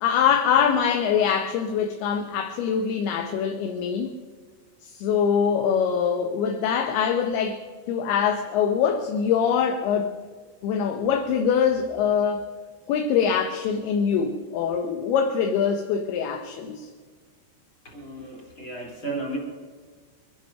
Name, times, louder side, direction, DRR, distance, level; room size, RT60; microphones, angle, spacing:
voice 1, 0.0-4.1 4.8-10.1 10.6-12.4 12.9-16.9, left 7 dB, 75° left, 2.5 m, -23 dB
voice 2, 17.8-19.4, right 2 dB, 30° left, 3.3 m, -34 dB
23.0 x 10.5 x 5.7 m
omnidirectional pair, 5.2 m